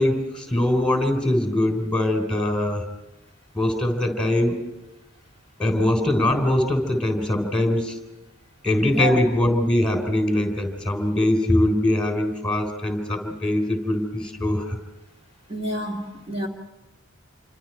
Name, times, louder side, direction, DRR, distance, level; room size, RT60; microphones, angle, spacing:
voice 1, 0.0-2.8 3.5-4.7 5.6-8.0 8.6-14.7, left 1 dB, 5° left, 4 dB, 3.7 m, -22 dB
voice 2, 15.5-16.5, right 1 dB, 30° right, 0 dB, 2.2 m, -28 dB
28.0 x 25.0 x 4.5 m, 1.0 s
head